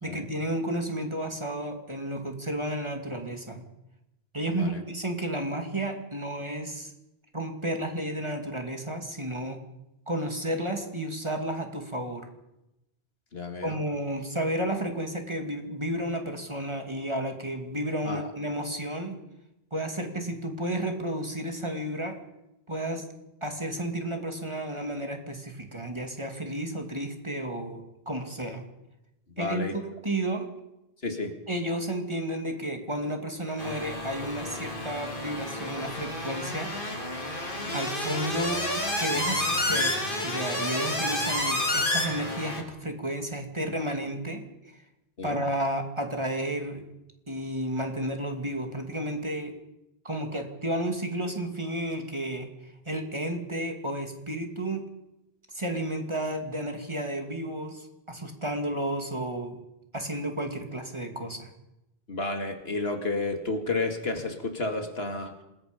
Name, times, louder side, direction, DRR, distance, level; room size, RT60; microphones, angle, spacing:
voice 1, 0.0-3.6 4.3-6.9 7.3-9.6 10.1-12.3 13.6-19.2 19.7-22.2 22.7-23.1 23.4-28.6 29.4-30.5 31.5-36.7 37.7-38.7 39.0-40.0 40.2-44.4 45.2-46.8 47.3-49.5 50.0-54.8 55.5-59.6 59.9-61.5, right 1 dB, 25° right, 4 dB, 2.6 m, -32 dB
voice 2, 4.5-4.8 13.3-13.8 18.0-18.3 29.3-29.8 31.0-31.4 37.6-37.9 45.2-45.5 62.1-65.3, left 3 dB, 65° left, 5 dB, 2.5 m, -31 dB
sound 1, 33.6-42.6, left 1 dB, 50° left, 3.7 m, -30 dB
27.5 x 21.0 x 5.3 m, 0.90 s
omnidirectional pair, 1.1 m